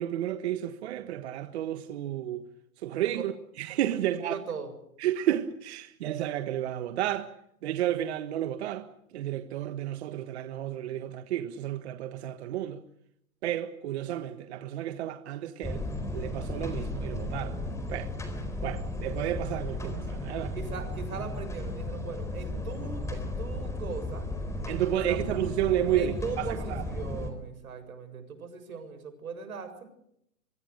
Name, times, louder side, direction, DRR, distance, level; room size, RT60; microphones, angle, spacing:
voice 1, 0.0-2.4 2.8-3.3 3.6-4.4 5.0-7.3 7.6-8.9 9.1-12.8 13.4-15.8 16.1-17.6 17.9-18.1 18.6-20.5 24.7-26.8, right 12 dB, 50° right, 1.5 m, -31 dB
voice 2, 3.9-4.7 20.5-24.3 25.1-25.2 25.9-29.9, right 5 dB, 90° right, 7.3 m, -39 dB
sound 1, 15.6-27.3, left 1 dB, 5° left, 3.9 m, -35 dB
24.5 x 23.5 x 6.6 m
hypercardioid pair, 150°, 41 cm